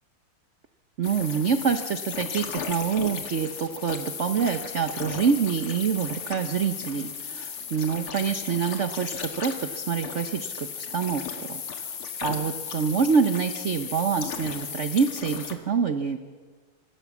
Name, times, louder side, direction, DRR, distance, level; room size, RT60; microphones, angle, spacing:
sound 1, 1.0-15.6, left 7 dB, 80° left, 2.6 m, -35 dB
voice 1, 1.0-11.9 12.2-16.2, right 6 dB, 55° right, 8 dB, 0.8 m, -26 dB
25.0 x 17.0 x 7.2 m, 1.5 s
omnidirectional pair, 2.4 m